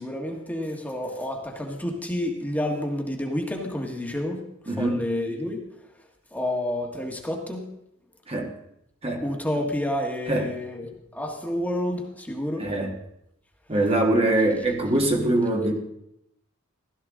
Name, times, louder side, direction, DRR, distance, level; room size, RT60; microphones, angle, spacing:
voice 1, 0.0-4.4 4.8-5.7 6.3-7.6 9.2-12.7, left 1 dB, 10° left, 1 dB, 1.6 m, -29 dB
voice 2, 4.7-5.0 8.3-8.5 9.0-9.2 10.3-10.5 12.6-12.9 13.7-15.7, right 1 dB, 30° right, 1 dB, 1.6 m, -23 dB
16.0 x 13.0 x 3.7 m, 0.79 s
head